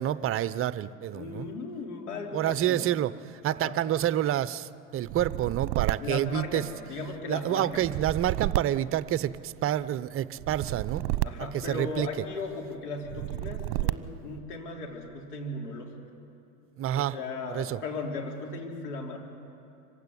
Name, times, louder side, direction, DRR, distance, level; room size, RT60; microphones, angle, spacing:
voice 1, 0.0-1.5 2.3-3.1 3.4-6.6 7.3-11.0 11.7-12.1 16.8-17.2 17.5-17.8, right 12 dB, 30° right, 16 dB, 0.7 m, -28 dB
voice 2, 1.1-2.9 3.5-3.8 6.0-7.9 11.2-15.9 16.9-19.2, left 3 dB, 75° left, 0 dB, 4.3 m, -37 dB
sound 1, 5.0-7.0 7.7-9.7 10.4-12.3 13.0-14.4, right 18 dB, 45° right, 1.0 m, -32 dB
25.5 x 16.0 x 9.9 m, 2.8 s
hypercardioid pair, 85°, 46 cm